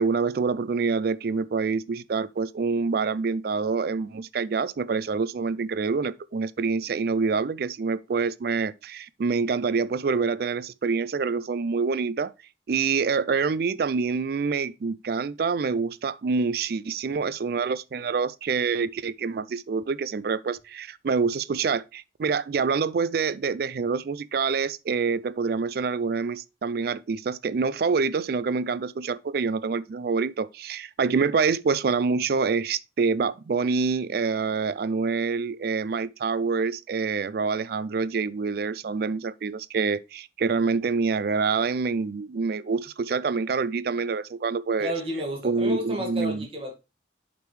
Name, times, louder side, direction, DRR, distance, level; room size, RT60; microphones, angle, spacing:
voice 1, 0.0-12.3 12.7-44.9 45.4-46.5, right 5 dB, 55° right, 0.4 m, -26 dB
voice 2, 44.8-46.7, equal, 30° right, 1.8 m, -31 dB
7.8 x 5.1 x 3.2 m
head